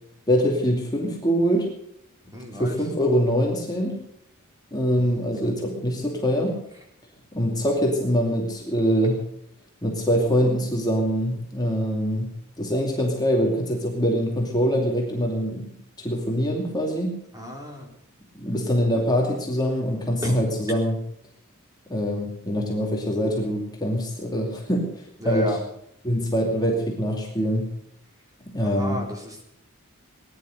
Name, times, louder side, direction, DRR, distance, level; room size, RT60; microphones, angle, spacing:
voice 1, 0.3-1.7 2.5-4.0 4.7-6.6 7.3-9.2 9.8-12.3 12.6-15.7 16.0-17.2 18.3-21.0 21.9-25.5 26.0-27.7 28.5-29.0, equal, 20° left, -1 dB, 2.5 m, -24 dB
voice 2, 2.3-2.8 5.0-5.5 17.3-17.9 20.2-20.4 25.2-25.6 28.6-29.5, left 1 dB, 15° right, 1 dB, 4.1 m, -32 dB
19.5 x 11.0 x 6.6 m, 0.72 s
head